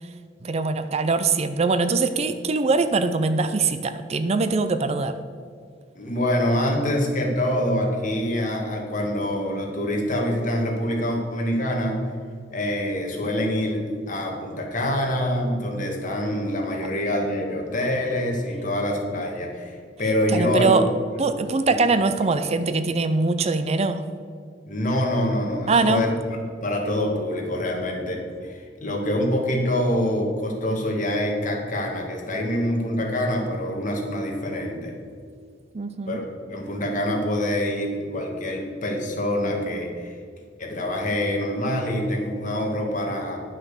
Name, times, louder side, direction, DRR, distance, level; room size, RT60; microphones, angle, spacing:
voice 1, 0.4-5.2 20.3-20.8 21.2-24.0 25.7-26.0 35.7-36.2, right 3 dB, 35° right, 11 dB, 0.5 m, -22 dB
voice 2, 6.0-12.0 12.5-20.8 21.7-21.8 24.7-26.1 26.4-34.9 36.1-36.2 36.5-40.1 40.6-43.4, left 1 dB, 45° left, 0 dB, 1.9 m, -25 dB
10.5 x 6.2 x 6.6 m, 2.1 s
head